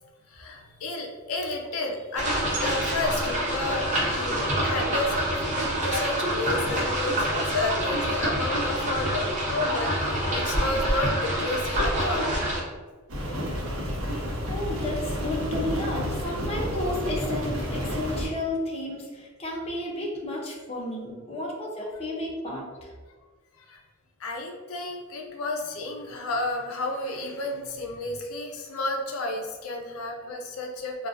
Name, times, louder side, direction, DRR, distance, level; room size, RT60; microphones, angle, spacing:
voice 1, 0.3-2.3 2.6-12.3 14.1-14.3 23.6-23.8 24.2-31.1, left 2 dB, 80° left, 2 dB, 0.5 m, -31 dB
sound 1, 2.2-12.6, right 1 dB, 35° right, 0.7 m, -26 dB
Rain, 13.1-18.3, equal, 80° right, 0.7 m, -30 dB
voice 2, 14.5-22.9, left 1 dB, 30° left, -2 dB, 0.6 m, -32 dB
3.7 x 2.3 x 2.4 m, 1.4 s
head